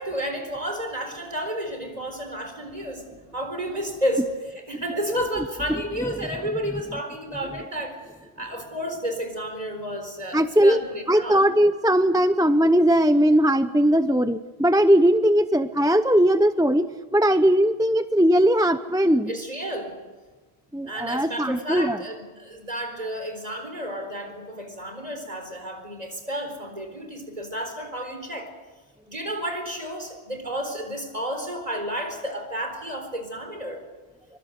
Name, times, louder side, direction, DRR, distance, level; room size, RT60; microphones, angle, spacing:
voice 1, 0.0-3.1 3.3-8.1 8.4-11.5 19.3-20.0 20.9-28.5 29.1-33.8, equal, 40° right, 5 dB, 4.4 m, -31 dB
voice 2, 10.3-10.8 11.1-16.9 17.1-19.3 20.7-22.0, equal, 5° right, 11 dB, 0.5 m, -19 dB
24.5 x 24.5 x 6.6 m, 1.3 s
omnidirectional pair, 1.1 m